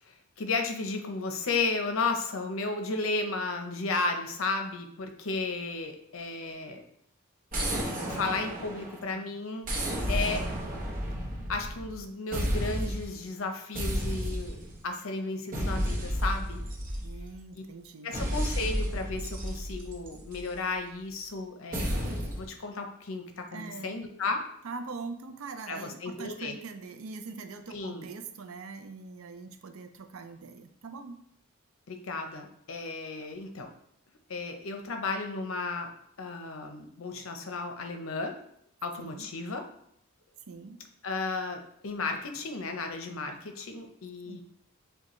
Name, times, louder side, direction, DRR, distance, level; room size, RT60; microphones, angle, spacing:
voice 1, 0.1-6.8 8.1-9.7 10.1-10.5 11.5-16.6 17.5-17.6 18.0-24.4 25.7-26.5 27.7-28.1 31.9-33.7 34.3-35.9 36.2-38.3 38.8-39.6 41.0-44.4, left 3 dB, 65° left, 5 dB, 0.6 m, -34 dB
sound 1, 7.5-9.1 9.6-12.0 12.3-13.2 13.7-14.8 15.5-17.4 18.1-20.5 21.7-22.5, equal, 40° right, 0.8 m, -32 dB
voice 2, 17.0-18.3 23.5-24.0 24.6-31.2 39.0-39.3 40.5-40.8 44.3-44.4, right 4 dB, 75° right, 7 dB, 0.5 m, -42 dB
6.6 x 2.3 x 3.0 m, 0.71 s
head